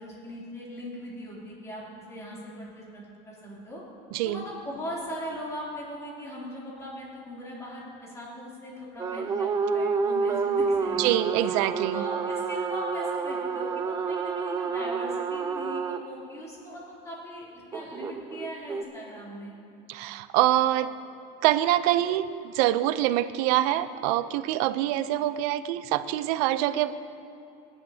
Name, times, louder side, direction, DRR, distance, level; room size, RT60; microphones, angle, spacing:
voice 1, 0.0-1.8 2.1-3.8 4.2-11.6 11.9-17.4 17.7-19.5, equal, 15° left, -6 dB, 3.0 m, -39 dB
voice 2, 4.1-4.4 11.0-12.0 19.9-20.9 21.4-26.9, right 13 dB, 80° right, 13 dB, 0.6 m, -25 dB
morning azan, 9.0-16.0 17.7-18.8, right 5 dB, 15° right, 0.4 m, -29 dB
23.5 x 10.5 x 2.8 m, 2.7 s
cardioid pair, 170°, 20 cm